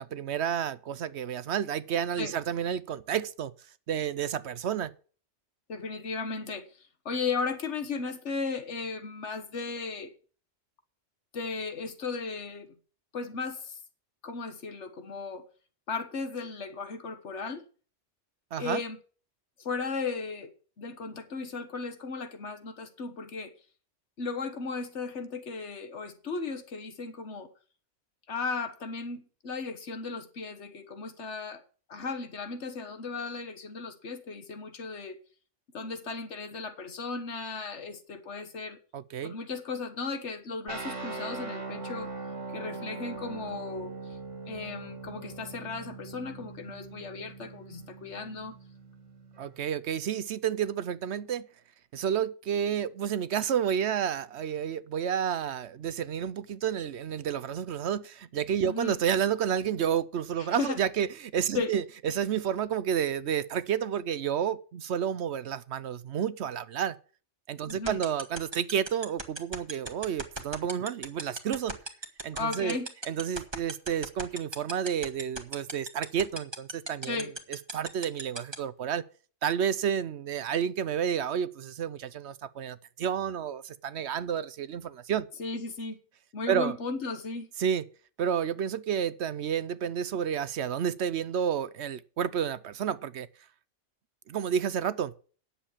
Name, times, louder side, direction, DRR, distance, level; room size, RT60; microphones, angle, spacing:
voice 1, 0.0-3.5 3.9-4.9 18.5-18.8 38.9-39.3 49.4-51.5 51.9-67.0 67.5-71.8 72.2-72.8 73.1-79.0 79.4-85.3 86.5-86.7 87.6-87.8 88.2-93.3 94.3-95.1, right 8 dB, 65° right, 0.9 m, -30 dB
voice 2, 5.7-10.1 11.3-12.7 13.1-13.8 14.2-15.4 15.9-17.6 18.6-19.0 19.6-20.5 20.8-23.5 24.2-27.5 28.3-31.6 31.9-35.2 35.7-38.8 39.2-42.1 42.5-43.9 44.5-48.6 58.6-59.0 60.4-60.8 61.5-61.7 67.7-68.0 72.3-72.9 77.0-77.3 85.4-86.0 86.3-87.5, left 4 dB, 70° left, 1.7 m, -35 dB
sound 1, 40.7-49.6, right 3 dB, 90° right, 2.6 m, -41 dB
sound 2, 67.7-78.5, right 2 dB, 20° right, 1.4 m, -34 dB
10.0 x 7.2 x 7.3 m
omnidirectional pair, 1.2 m